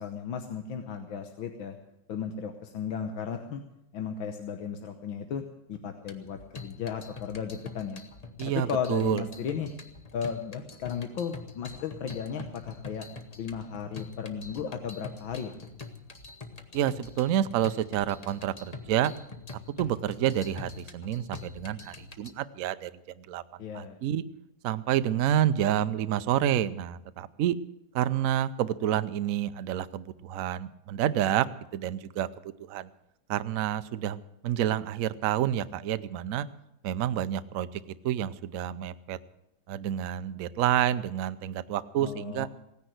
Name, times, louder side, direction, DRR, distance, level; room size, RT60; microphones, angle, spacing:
voice 1, 0.0-1.8 2.1-3.6 3.9-5.4 5.7-8.0 8.4-9.7 10.1-13.1 13.4-15.6 23.6-24.0 42.0-42.5, left 7 dB, 80° left, 6 dB, 1.8 m, -35 dB
sound 1, 6.0-22.3, left 4 dB, 30° left, 0.8 m, -45 dB
voice 2, 8.4-9.2 16.7-19.1 19.8-22.9 23.2-23.4 23.7-24.2 24.6-27.6 27.9-31.5 31.7-32.3 32.6-32.9 33.3-36.5 36.8-39.2 39.7-42.5, right 11 dB, 65° right, 13 dB, 0.8 m, -28 dB
17.0 x 10.0 x 7.9 m, 0.84 s
omnidirectional pair, 2.2 m